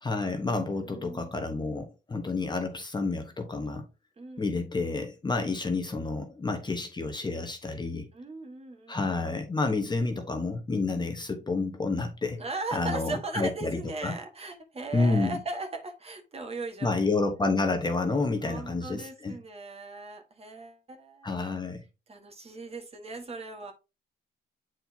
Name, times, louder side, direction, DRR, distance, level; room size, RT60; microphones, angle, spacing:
voice 1, 0.0-3.8 4.4-8.1 8.9-12.4 12.7-14.2 14.9-15.4 16.8-19.3 21.2-21.8, left 3 dB, 20° left, 1.1 m, -29 dB
voice 2, 0.6-1.3 4.2-4.5 5.3-5.6 8.1-9.3 12.4-16.9 18.4-21.4 22.1-23.7, right 3 dB, 30° right, 1.5 m, -38 dB
7.7 x 4.5 x 2.8 m
cardioid pair, 90°, 20 cm